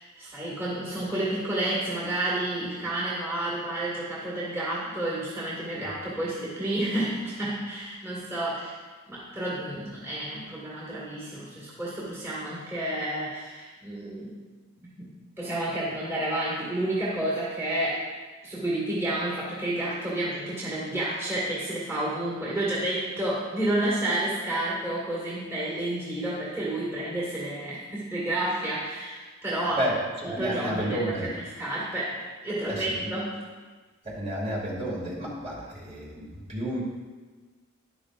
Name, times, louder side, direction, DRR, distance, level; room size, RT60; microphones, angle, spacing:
voice 1, 0.0-8.8 9.1-14.4 14.8-18.1 18.4-29.8 30.2-33.4, right 1 dB, 10° right, -6 dB, 2.0 m, -30 dB
voice 2, 29.7-31.3 32.6-33.1 34.0-36.8, right 1 dB, 30° right, -4 dB, 2.4 m, -31 dB
12.0 x 10.5 x 2.5 m, 1.4 s
head